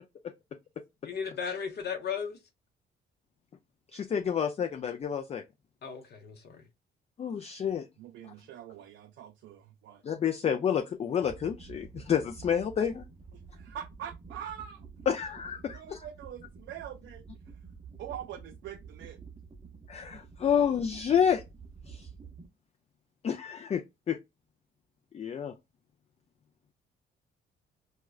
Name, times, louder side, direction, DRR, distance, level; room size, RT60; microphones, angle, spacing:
voice 1, 1.0-2.4 5.8-6.7, left 6 dB, 55° left, 0.7 m, -36 dB
voice 2, 3.9-5.4 7.2-7.9 8.2-8.3 10.0-13.1 15.1-16.0 19.9-21.4 21.9-22.1 23.2-24.2 25.1-25.5, left 8 dB, 35° left, 0.3 m, -29 dB
voice 3, 8.0-10.0 13.3-14.8 15.7-17.2 18.0-19.2, right 10 dB, 70° right, 0.5 m, -44 dB
sound 1, 11.2-22.5, right 5 dB, 25° right, 0.6 m, -49 dB
4.8 x 2.1 x 2.3 m
cardioid pair, 90°, 20 cm